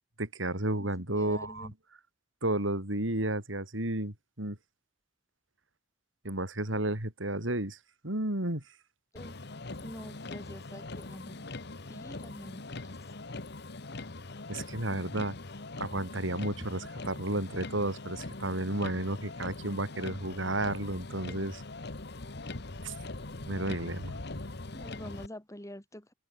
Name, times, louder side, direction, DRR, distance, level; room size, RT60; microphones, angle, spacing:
voice 1, 0.2-1.7 2.4-4.6 6.2-7.8 8.0-8.6 14.5-15.4 15.8-21.6 22.8-22.9 23.5-24.1, right 1 dB, 85° right, 5.1 m, -32 dB
voice 2, 1.1-1.7 9.1-9.4 9.8-11.5 11.9-13.0 24.7-26.1, left 1 dB, 15° left, 4.6 m, -46 dB
Motor vehicle (road), 9.2-25.3, left 2 dB, 60° left, 1.5 m, -42 dB
head